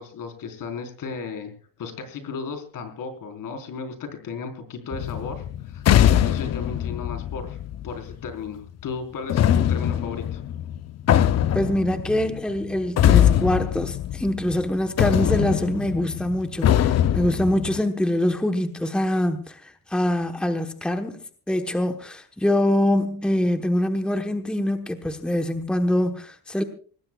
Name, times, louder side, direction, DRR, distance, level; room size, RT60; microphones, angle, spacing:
voice 1, 0.0-1.5 1.8-7.6 7.8-10.4, left 5 dB, 65° left, 4.2 m, -35 dB
sound 1, 4.9-8.3 9.3-14.7 15.0-17.8, left 10 dB, 45° left, 0.7 m, -22 dB
voice 2, 11.5-26.6, left 1 dB, 5° left, 1.1 m, -24 dB
25.0 x 19.0 x 2.3 m
cardioid pair, 155°, 35 cm